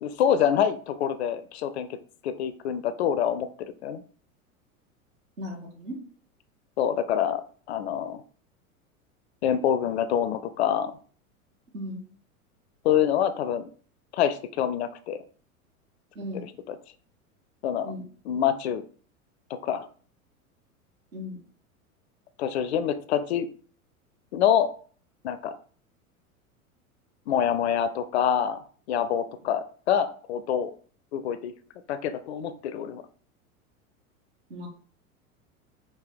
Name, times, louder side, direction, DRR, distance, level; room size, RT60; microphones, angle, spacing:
voice 1, 0.0-2.0 2.2-4.0 6.8-8.2 9.4-11.0 12.8-13.7 14.1-15.2 16.4-16.8 17.6-17.9 18.3-18.8 19.6-19.9 22.4-23.5 24.3-24.7 25.2-25.6 27.3-30.7 31.1-31.5 31.9-33.0, left 9 dB, 50° left, 12 dB, 0.5 m, -26 dB
voice 2, 5.4-6.0 11.7-12.0 16.1-16.4 17.8-18.1 21.1-21.4 34.5-34.7, left 1 dB, 65° right, 0 dB, 1.7 m, -36 dB
4.9 x 2.6 x 3.9 m, 0.44 s
figure-of-eight pair, 85°, 43 cm